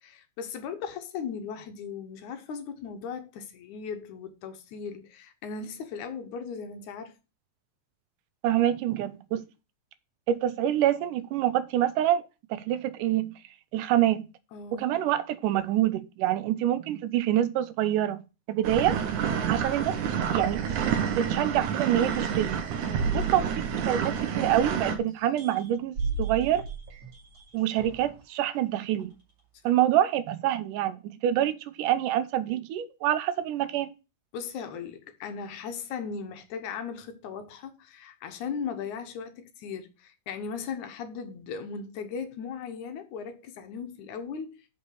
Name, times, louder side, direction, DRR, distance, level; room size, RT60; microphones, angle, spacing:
voice 1, 0.0-7.1 14.5-14.9 22.8-23.4 29.7-29.8 34.3-44.7, left 6 dB, 75° left, 2.4 m, -38 dB
voice 2, 8.4-9.4 10.3-12.2 12.5-13.3 13.7-14.3 14.7-18.2 18.5-19.0 19.5-20.0 20.3-20.8 21.2-22.6 23.1-26.6 27.5-29.1 29.6-33.9, right 12 dB, 90° right, 2.3 m, -26 dB
sound 1, 18.6-25.0, right 8 dB, 70° right, 2.6 m, -29 dB
sound 2, 22.9-24.6 25.1-28.2 29.0-29.1, right 4 dB, 50° right, 3.1 m, -34 dB
6.7 x 5.3 x 6.3 m
omnidirectional pair, 3.6 m